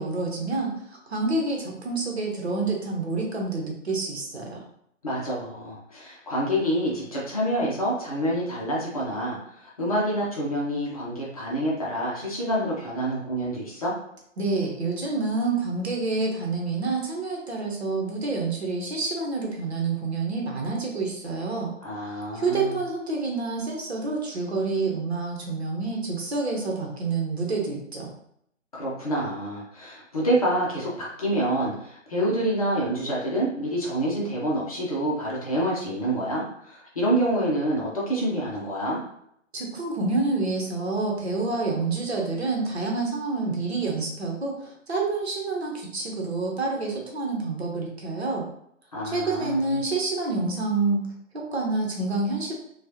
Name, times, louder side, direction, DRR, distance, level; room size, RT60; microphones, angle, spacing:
voice 1, 0.0-4.6 14.4-21.7 22.3-28.1 39.5-48.5 49.0-51.1 51.3-52.5, right 3 dB, 55° right, 0 dB, 1.0 m, -28 dB
voice 2, 5.0-13.9 21.8-22.8 28.7-39.0 48.9-49.8, right 1 dB, 30° left, -5 dB, 0.8 m, -27 dB
4.5 x 2.4 x 2.9 m, 0.73 s
figure-of-eight pair, 140°, 38 cm